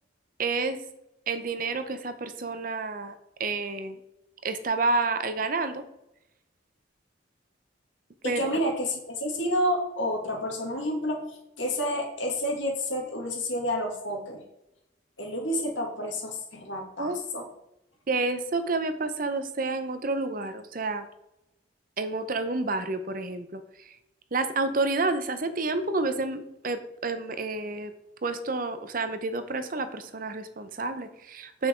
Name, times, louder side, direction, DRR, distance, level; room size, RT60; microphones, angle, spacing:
voice 1, 0.4-0.8 1.3-3.1 3.4-4.0 4.4-5.8 8.2-8.5 17.0-17.2 18.1-21.1 22.0-23.6 23.9-24.0 24.3-27.9 28.2-31.7, right 3 dB, 45° right, 10 dB, 0.7 m, -29 dB
voice 2, 8.2-14.4 15.2-17.5, equal, 80° left, 1 dB, 2.2 m, -30 dB
8.2 x 5.6 x 4.5 m, 0.87 s
head